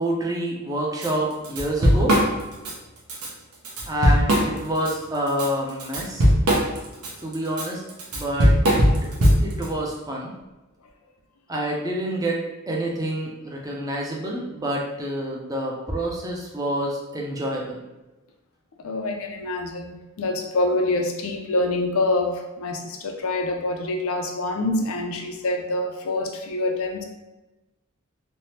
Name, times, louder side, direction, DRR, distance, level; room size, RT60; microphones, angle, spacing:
voice 1, 0.0-2.1 3.9-6.2 7.2-7.8 8.1-8.5 9.4-10.3 11.5-12.4 12.7-17.8, right 1 dB, 15° right, -1 dB, 0.4 m, -27 dB
Drum kit / Drum, 1.0-1.1 1.4-2.7 3.1-3.3 3.6-4.9 5.3-9.7, equal, 80° right, 0.7 m, -19 dB
voice 2, 18.8-27.0, left 2 dB, 65° left, 3 dB, 0.4 m, -26 dB
3.2 x 2.0 x 2.8 m, 1.1 s
head